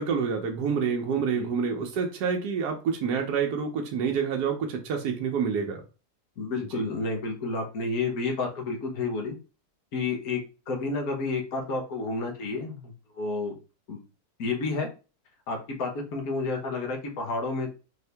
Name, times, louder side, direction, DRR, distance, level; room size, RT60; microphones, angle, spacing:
voice 1, 0.0-5.8 6.7-6.8, right 6 dB, 90° right, 1.3 m, -28 dB
voice 2, 6.4-9.4 9.9-10.4 10.7-13.6 13.9-14.0 14.4-14.9 15.5-17.7, left 3 dB, 70° left, 1.6 m, -30 dB
4.6 x 2.7 x 3.3 m
omnidirectional pair, 1.6 m